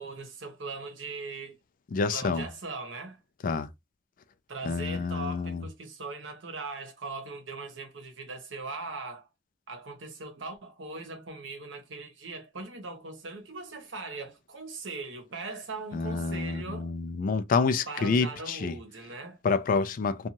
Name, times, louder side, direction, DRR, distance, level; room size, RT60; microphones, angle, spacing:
voice 1, 0.0-1.6 2.1-3.2 4.5-9.3 9.7-16.9 17.9-19.4, right 3 dB, 80° right, 0.9 m, -40 dB
voice 2, 1.9-2.5 3.4-3.7 4.6-5.7 15.9-18.7 19.4-20.3, left 4 dB, 45° left, 0.3 m, -28 dB
2.6 x 2.3 x 2.8 m
head